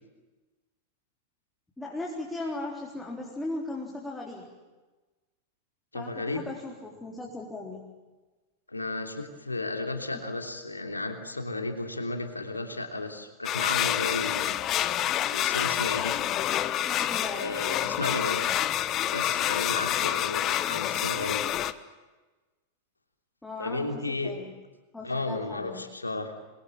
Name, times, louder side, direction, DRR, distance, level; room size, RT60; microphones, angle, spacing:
voice 1, 1.8-4.5 5.9-7.8 16.9-17.5 23.4-24.5 24.9-25.8, left 2 dB, 5° left, -2 dB, 4.2 m, -37 dB
voice 2, 5.9-6.4 8.7-14.6 15.3-16.1 17.3-18.4 19.1-21.4 23.6-24.3 25.0-26.4, left 2 dB, 80° left, 5 dB, 3.2 m, -33 dB
sound 1, 13.4-21.7, left 12 dB, 35° left, 1.1 m, -28 dB
27.5 x 22.5 x 9.0 m, 1.2 s
figure-of-eight pair, 90°, 0 cm